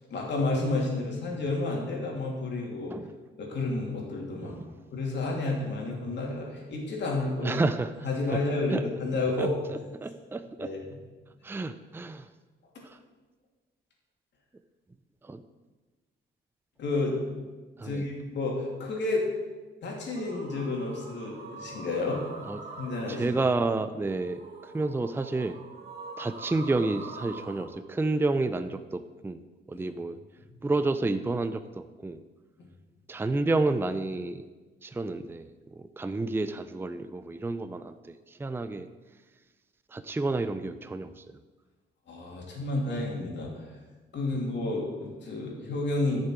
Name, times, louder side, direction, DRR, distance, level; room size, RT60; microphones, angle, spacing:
voice 1, 0.1-2.9 3.4-4.6 4.9-7.6 8.0-9.6 10.6-11.0 16.8-17.2 17.8-19.3 19.8-22.2 22.8-23.4 29.7-29.9 30.5-30.6 42.1-43.7 44.1-46.2, left 2 dB, 65° left, -1 dB, 3.1 m, -31 dB
voice 2, 7.4-7.9 8.7-8.8 9.4-9.5 10.0-10.7 11.4-12.3 15.2-15.4 17.8-18.0 22.5-22.6 23.1-25.6 26.2-29.4 29.7-30.2 30.6-32.2 33.1-34.4 34.8-38.1 38.4-38.9 39.9-41.1, right 2 dB, 10° right, 11 dB, 0.5 m, -30 dB
sound 1, 20.1-27.7, right 4 dB, 50° right, 2.2 m, -44 dB
14.0 x 6.8 x 4.7 m, 1.3 s
cardioid pair, 90°, 20 cm